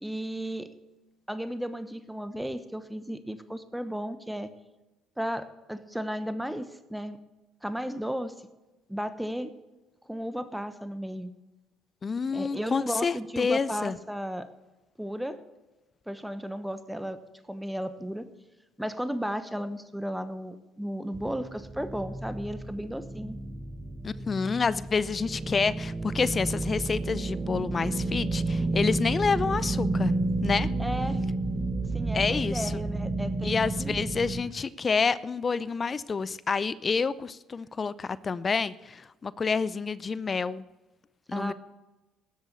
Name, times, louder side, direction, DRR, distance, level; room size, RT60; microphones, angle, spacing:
voice 1, 0.0-0.7 1.3-4.5 5.2-7.2 7.6-8.3 8.9-9.5 10.1-11.3 12.3-14.5 15.0-15.4 16.1-17.2 17.5-18.3 18.8-23.4 30.8-31.2 31.9-33.9 41.3-41.5, equal, 5° right, 11 dB, 1.0 m, -34 dB
voice 2, 12.0-14.0 24.0-30.7 32.1-32.7 33.4-40.6 41.3-41.5, left 5 dB, 35° left, 19 dB, 0.5 m, -28 dB
sound 1, 21.1-34.4, right 2 dB, 30° right, 1.4 m, -31 dB
13.0 x 8.1 x 8.2 m, 1.1 s
supercardioid pair, 65°, 0 cm